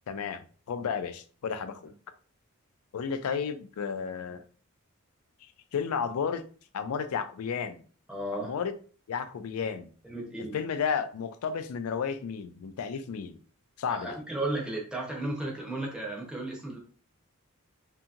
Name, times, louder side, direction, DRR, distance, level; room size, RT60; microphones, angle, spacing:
voice 1, 0.1-1.9 2.9-4.4 5.4-6.4 6.7-7.8 8.3-8.7 9.1-9.9 10.5-13.4 13.8-14.2, left 6 dB, 75° left, 0.4 m, -32 dB
voice 2, 8.1-8.5 10.0-10.6 13.9-16.8, right 2 dB, 5° right, 0.6 m, -34 dB
2.7 x 2.7 x 2.4 m
head